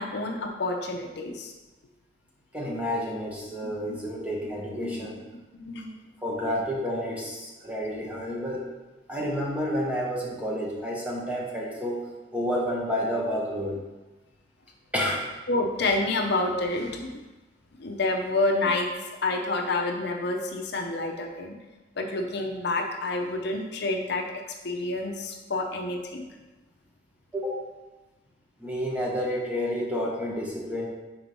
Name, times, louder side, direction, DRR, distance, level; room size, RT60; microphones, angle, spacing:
voice 1, 0.0-1.5 3.7-4.0 4.4-4.5 4.8-5.1 5.5-5.9 15.5-17.2 17.8-18.9 19.2-21.6 22.0-26.2, left 2 dB, 60° left, 2 dB, 0.7 m, -28 dB
voice 2, 2.5-5.2 6.2-8.7 9.1-12.0 12.3-13.8 14.9-15.2 27.3-27.6 28.6-30.9, equal, 5° right, -3 dB, 1.0 m, -30 dB
4.6 x 4.4 x 5.2 m, 1.1 s
head